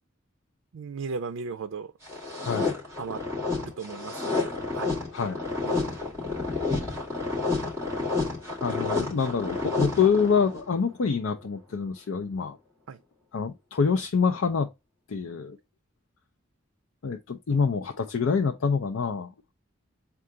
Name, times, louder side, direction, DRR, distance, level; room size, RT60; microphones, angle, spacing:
voice 1, 0.7-1.9 3.0-3.2 3.6-5.0 5.6-6.0 12.9-13.0, right 5 dB, 90° right, 0.4 m, -36 dB
sound 1, 2.0-10.6, left 3 dB, 15° right, 2.2 m, -30 dB
voice 2, 2.4-2.7 5.1-5.4 8.6-12.6 13.3-14.7 15.1-15.6 17.0-19.3, left 5 dB, 85° left, 0.5 m, -26 dB
3.8 x 2.3 x 4.5 m
head